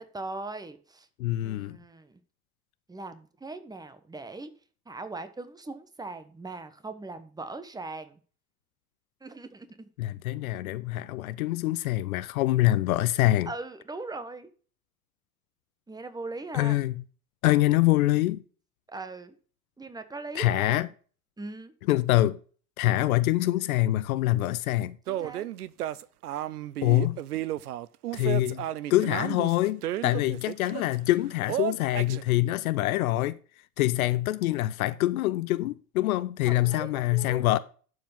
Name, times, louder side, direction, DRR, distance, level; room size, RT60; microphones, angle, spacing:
voice 1, 0.0-1.1 1.4-2.2 2.9-4.5 4.9-8.2 9.2-9.9 13.5-14.5 15.9-16.8 18.9-19.3 19.8-20.9 21.4-21.7 25.1-25.5 36.5-37.5, right 3 dB, 10° right, 1.2 m, -40 dB
voice 2, 1.2-1.8 10.0-13.5 16.5-17.0 17.4-18.4 20.3-20.9 21.9-22.4 22.8-25.0 26.8-27.2 28.1-33.4 33.8-37.6, left 16 dB, 70° left, 0.7 m, -25 dB
sound 1, 25.1-30.9 31.5-32.2, right 12 dB, 80° right, 0.6 m, -33 dB
11.5 x 4.9 x 5.4 m
hypercardioid pair, 80°, 45 cm